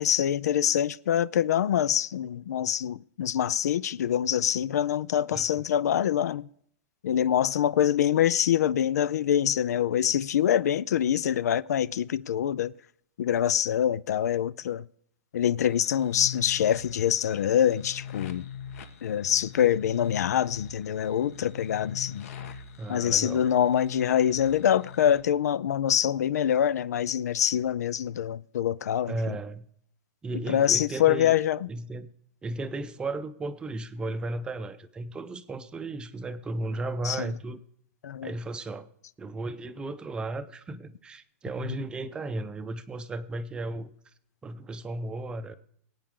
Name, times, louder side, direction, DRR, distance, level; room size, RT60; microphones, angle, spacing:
voice 1, 0.0-6.5 7.0-12.7 13.2-14.8 15.3-18.5 19.0-22.3 22.9-29.4 30.5-31.6 37.0-37.3 38.0-38.3, left 10 dB, 90° left, 0.4 m, -25 dB
sound 1, 15.7-25.2, left 8 dB, 65° left, 1.4 m, -41 dB
voice 2, 22.8-23.4 29.1-29.7 30.2-31.3 31.7-32.1 32.4-37.6 38.2-38.9 39.2-43.9 44.4-45.5, right 2 dB, 10° right, 0.6 m, -35 dB
25.0 x 8.9 x 3.7 m
supercardioid pair, 155°, 9 cm